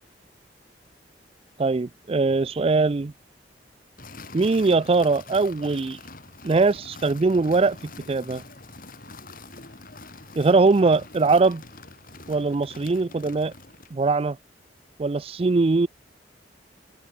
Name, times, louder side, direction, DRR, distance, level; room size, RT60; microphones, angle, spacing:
voice 1, 1.6-3.1 4.3-6.0 6.4-8.4 10.4-11.6 12.3-13.5 13.9-14.4 15.0-15.9, right 3 dB, 30° right, 0.4 m, -21 dB
sound 1, 4.0-14.0, left 3 dB, 50° left, 4.9 m, -44 dB
open air
head